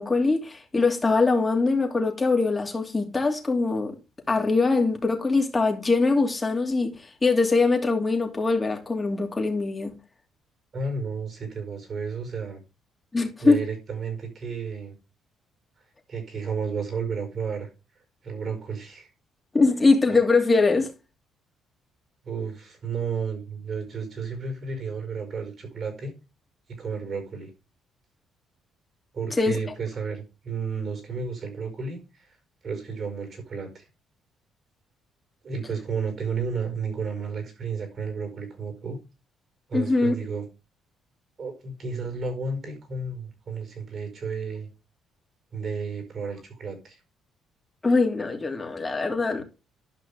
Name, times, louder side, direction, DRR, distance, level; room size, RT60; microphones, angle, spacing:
voice 1, 0.0-3.9 4.3-6.9 7.2-9.9 13.1-13.6 19.5-20.9 29.4-29.6 39.7-40.1 47.8-49.4, left 3 dB, 25° left, 2.8 m, -22 dB
voice 2, 10.7-12.6 13.4-15.0 16.1-17.7 18.2-19.1 22.2-26.1 26.7-27.5 29.1-32.3 32.6-33.8 35.4-39.0 39.7-40.5 41.4-44.7 45.5-47.0, right 5 dB, 50° right, 4.7 m, -32 dB
12.0 x 5.7 x 3.5 m
supercardioid pair, 75°, 0 cm